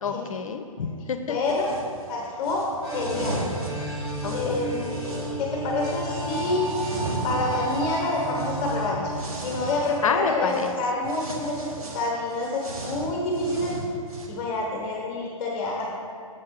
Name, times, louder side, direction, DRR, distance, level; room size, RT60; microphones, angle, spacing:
voice 1, 0.0-1.4 4.2-4.6 10.0-10.7, left 6 dB, 65° left, 7 dB, 0.6 m, -28 dB
voice 2, 1.3-1.7 2.1-2.6 2.9-3.4 4.3-6.7 7.2-9.0 9.4-11.7 11.9-13.7 14.3-16.0, left 2 dB, 30° left, -1 dB, 1.0 m, -27 dB
sound 1, 1.5-1.9 2.4-5.3 5.8-10.1 10.5-10.7 11.1-14.3, right 2 dB, 85° right, 1.6 m, -36 dB
sound 2, 2.8-9.8, right 1 dB, 20° right, 1.3 m, -33 dB
7.6 x 6.4 x 4.5 m, 2.3 s
hypercardioid pair, 130°, 18 cm